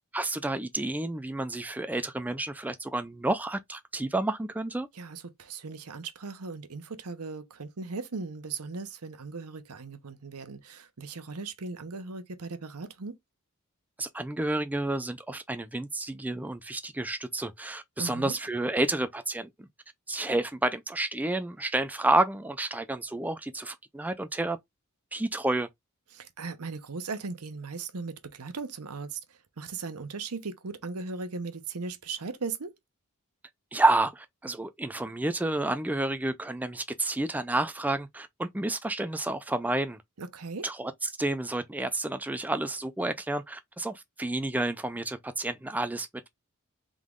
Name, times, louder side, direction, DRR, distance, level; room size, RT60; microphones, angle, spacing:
voice 1, 0.1-4.9 14.0-19.7 20.1-24.6 25.1-25.7 33.7-40.0 40.6-40.9 41.2-46.3, right 2 dB, 5° right, 0.4 m, -30 dB
voice 2, 4.9-13.1 18.0-18.4 26.1-32.7 40.2-40.7, right 4 dB, 85° right, 0.8 m, -38 dB
3.7 x 3.0 x 3.6 m
head